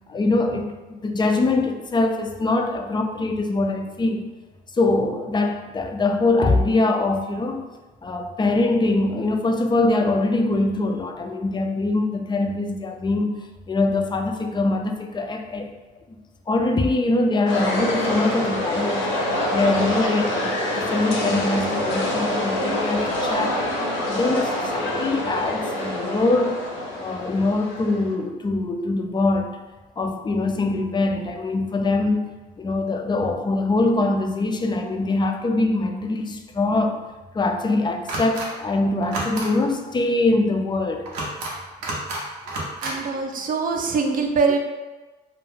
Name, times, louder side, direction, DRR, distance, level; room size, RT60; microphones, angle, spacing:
voice 1, 0.1-4.3 4.7-7.7 8.0-15.7 16.5-19.1 19.5-23.6 24.1-26.6 27.0-29.6 30.0-32.3 32.6-37.0 37.3-41.0, left 2 dB, 20° left, 4 dB, 0.3 m, -23 dB
sound 1, 17.5-28.1, left 1 dB, 70° left, 0.7 m, -26 dB
sound 2, 38.1-38.5 39.0-39.5 41.1-41.5 41.8-42.2 42.5-42.9, right 2 dB, 80° right, 0.6 m, -29 dB
voice 2, 42.8-44.6, right 4 dB, 40° right, 2 dB, 0.5 m, -23 dB
2.2 x 2.1 x 3.1 m, 1.2 s
hypercardioid pair, 60°, 21 cm